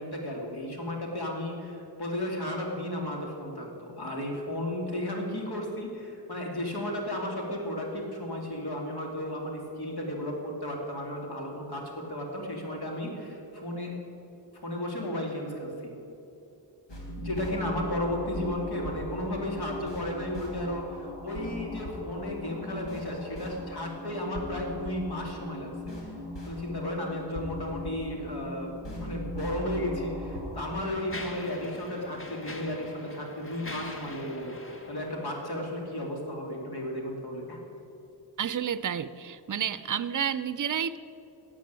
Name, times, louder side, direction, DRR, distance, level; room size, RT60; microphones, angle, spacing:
voice 1, 0.0-13.9 14.6-15.7 17.2-25.9 26.4-37.6, left 1 dB, 60° left, 0 dB, 3.0 m, -34 dB
sound 1, 16.9-30.6, equal, 80° left, 4.3 m, -39 dB
Mechanisms, 29.5-29.6 30.3-36.1, left 2 dB, 30° left, 1.3 m, -44 dB
voice 2, 38.4-41.0, right 8 dB, 45° right, 15 dB, 0.6 m, -30 dB
14.5 x 8.4 x 9.5 m, 2.9 s
wide cardioid pair, 125°, 43 cm